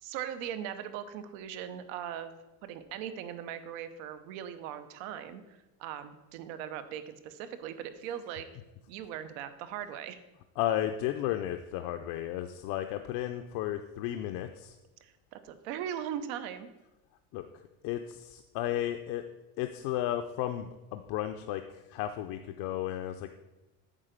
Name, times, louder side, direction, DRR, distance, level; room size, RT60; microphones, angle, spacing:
voice 1, 0.0-2.4 2.6-8.5 8.9-10.2 15.0-16.7, right 9 dB, 85° right, 10 dB, 0.9 m, -39 dB
voice 2, 10.6-14.8 17.3-17.4 17.8-19.2 19.6-23.3, left 12 dB, 55° left, 7 dB, 0.5 m, -33 dB
8.9 x 3.8 x 6.6 m, 1.0 s
cardioid pair, 170°, 40 cm